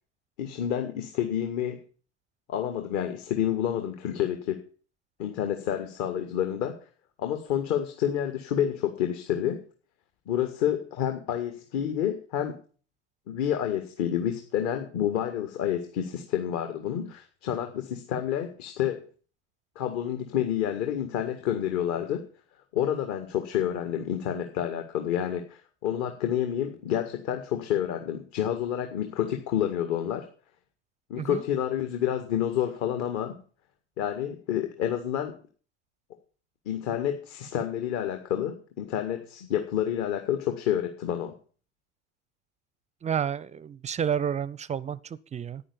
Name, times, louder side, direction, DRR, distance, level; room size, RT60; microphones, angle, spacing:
voice 1, 0.4-1.8 2.5-4.6 5.2-6.7 7.2-9.6 10.3-12.6 13.3-19.0 19.8-22.2 22.7-30.3 31.1-33.4 34.0-35.4 36.7-41.3, left 10 dB, 50° left, 1.9 m, -29 dB
voice 2, 43.0-45.6, right 8 dB, 20° right, 0.5 m, -30 dB
9.9 x 9.9 x 6.9 m
hypercardioid pair, 85°, 36 cm